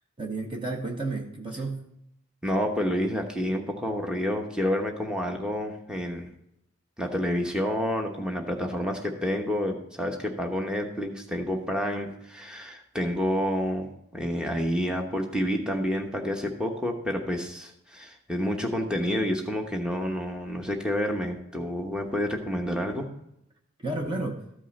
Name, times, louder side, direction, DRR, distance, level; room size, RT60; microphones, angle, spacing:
voice 1, 0.2-1.8 23.8-24.5, right 2 dB, 20° right, 2 dB, 0.9 m, -32 dB
voice 2, 2.4-6.3 7.0-23.1, equal, 5° right, 2 dB, 1.0 m, -29 dB
14.0 x 5.5 x 4.1 m, 0.80 s
head